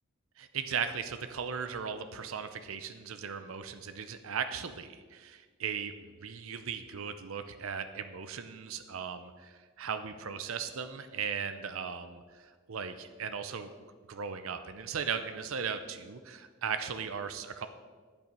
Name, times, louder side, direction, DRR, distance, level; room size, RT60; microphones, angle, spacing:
voice 1, 0.4-5.9 6.2-13.7 14.1-17.7, right 6 dB, 75° right, 10 dB, 0.6 m, -37 dB
8.9 x 8.8 x 5.3 m, 1.5 s
head